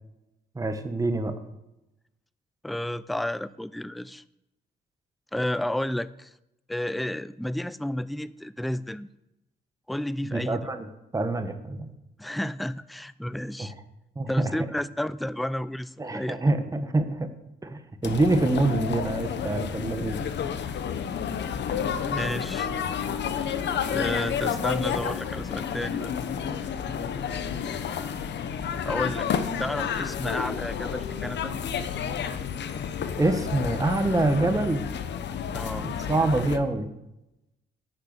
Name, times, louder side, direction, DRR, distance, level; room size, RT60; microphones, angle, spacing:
voice 1, 0.5-1.3 10.3-11.9 13.6-13.7 14.2-14.5 16.0-17.3 17.6-20.3 33.2-34.8 35.7-36.9, right 2 dB, 15° right, 7 dB, 1.2 m, -26 dB
voice 2, 2.6-4.2 5.3-6.3 6.7-9.1 9.9-10.6 12.2-13.7 14.3-16.4 22.1-22.7 23.9-26.1 28.8-29.3 29.6-31.5 35.5-35.9, left 1 dB, ahead, 17 dB, 0.4 m, -31 dB
sound 1, 18.0-36.6, left 7 dB, 60° left, 1.0 m, -30 dB
10.5 x 6.7 x 8.3 m, 0.90 s
cardioid pair, 90°, 20 cm